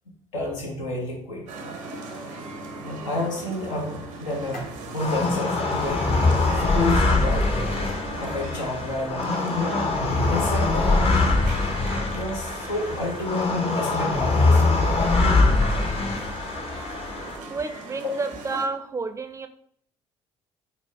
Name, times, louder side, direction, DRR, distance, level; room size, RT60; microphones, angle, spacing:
voice 1, 0.3-1.5 2.8-4.7 4.9-6.0 6.5-7.5 8.2-9.9 10.3-11.2 12.0-14.6 18.0-18.1, left 2 dB, 90° left, -1 dB, 0.8 m, -30 dB
sound 1, 1.5-18.7, right 3 dB, 80° right, 0.6 m, -38 dB
sound 2, 4.2-15.9 16.7-16.8 17.7-17.8 18.0-18.1, left 1 dB, 60° left, 1.1 m, -41 dB
sound 3, 5.0-17.4, left 3 dB, 40° left, 0.7 m, -23 dB
voice 2, 17.5-19.5, right 3 dB, 20° right, 9 dB, 0.4 m, -30 dB
4.0 x 2.1 x 3.4 m, 0.63 s
hypercardioid pair, 55°, 16 cm